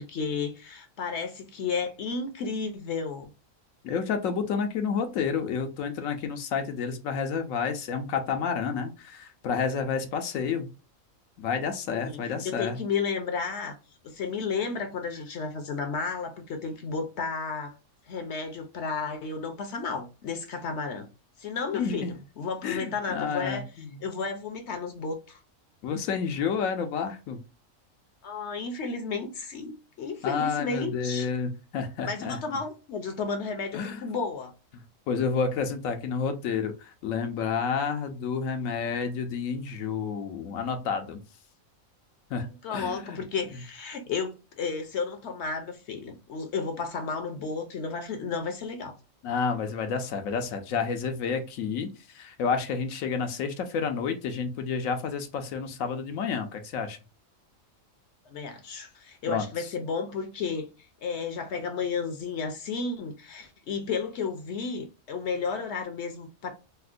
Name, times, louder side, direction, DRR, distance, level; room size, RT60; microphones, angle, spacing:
voice 1, 0.0-3.3 11.9-12.2 12.4-13.8 14.0-17.7 18.1-21.1 21.4-23.7 24.0-25.4 28.2-31.3 32.1-34.5 42.6-49.0 58.3-60.7 61.0-66.5, left 5 dB, 65° left, 0.8 m, -32 dB
voice 2, 3.8-10.7 11.4-12.8 21.7-22.1 22.6-24.0 25.8-27.4 30.2-32.4 33.7-34.0 35.1-41.2 42.3-43.0 49.2-57.0 59.3-59.7, left 6 dB, 80° left, 1.0 m, -30 dB
4.3 x 2.1 x 2.4 m
omnidirectional pair, 1.4 m